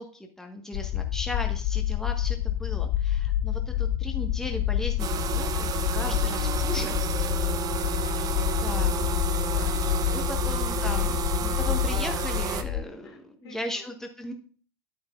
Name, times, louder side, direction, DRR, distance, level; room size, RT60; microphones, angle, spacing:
voice 1, 0.0-7.0 8.6-8.9 10.1-14.3, left 1 dB, 5° left, 3 dB, 1.4 m, -37 dB
sound 1, 0.7-12.8, left 12 dB, 40° left, 0.4 m, -28 dB
sound 2, 5.0-12.6, right 8 dB, 30° right, 0.8 m, -31 dB
voice 2, 7.5-10.5 11.6-11.7 13.0-13.9, left 3 dB, 75° left, 2 dB, 2.6 m, -49 dB
10.5 x 9.6 x 2.5 m, 0.40 s
figure-of-eight pair, 90°, 13 cm